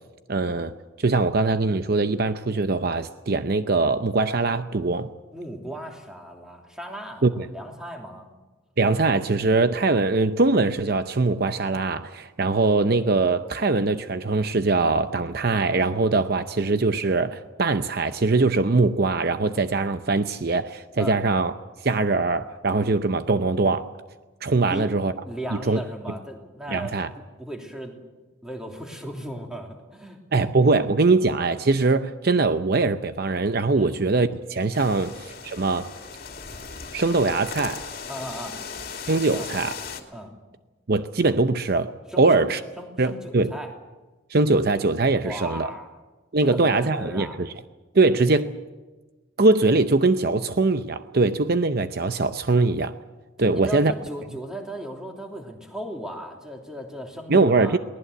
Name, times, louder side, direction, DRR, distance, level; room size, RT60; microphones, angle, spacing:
voice 1, 0.3-5.1 7.2-7.5 8.8-21.5 21.8-23.9 24.4-25.1 25.7-25.8 26.7-27.1 30.3-35.9 36.9-37.9 39.1-39.8 40.9-42.6 43.0-43.5 44.3-45.7 46.3-47.5 47.9-48.5 49.4-53.0 53.4-53.9 57.3-57.8, right 3 dB, 50° right, 0.7 m, -22 dB
voice 2, 5.3-8.3 21.0-21.2 24.6-24.9 25.2-27.9 28.4-30.8 33.7-34.0 38.1-38.6 39.2-39.6 40.1-40.3 42.1-42.4 42.8-43.7 45.2-45.9 46.4-47.4 53.4-57.8, equal, 5° right, 3.0 m, -37 dB
sound 1, 34.7-40.0, left 5 dB, 50° left, 2.5 m, -37 dB
22.5 x 18.5 x 8.0 m
head